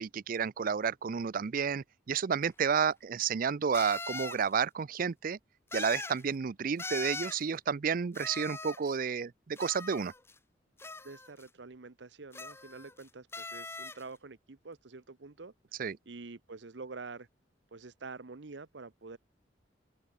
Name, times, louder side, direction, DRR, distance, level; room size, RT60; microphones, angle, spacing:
voice 1, 0.0-5.4 5.7-10.1 15.8-16.0, right 6 dB, 50° right, 0.4 m, -31 dB
sound 1, 2.4-2.5 3.7-4.4 5.7-6.2 6.8-7.4 8.1-8.9 9.6-10.4 10.8-11.4 12.3-13.0 13.3-14.0, left 3 dB, 15° left, 1.2 m, -41 dB
voice 2, 11.0-15.5 16.1-17.3 17.7-19.2, right 3 dB, 75° right, 0.9 m, -47 dB
head